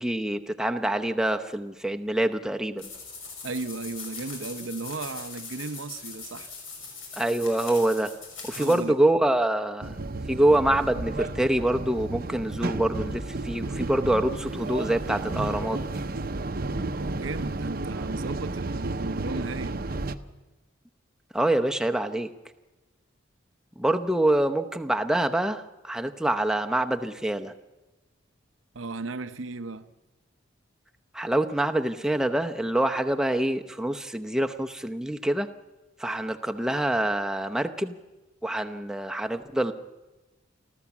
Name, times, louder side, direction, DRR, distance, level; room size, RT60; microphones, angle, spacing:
voice 1, 0.0-2.9 7.2-8.1 8.4-10.0 10.3-15.8 21.3-22.3 23.8-27.5 31.1-35.5 36.0-37.9 38.4-39.7, right 1 dB, 5° right, 0.8 m, -25 dB
sound 1, 2.8-8.8, left 4 dB, 85° left, 6.4 m, -41 dB
voice 2, 3.4-6.5 8.5-8.9 16.9-19.8 28.7-29.9, right 3 dB, 75° right, 0.8 m, -35 dB
sound 2, 9.8-20.2, right 2 dB, 45° right, 0.8 m, -32 dB
28.5 x 13.5 x 7.2 m
head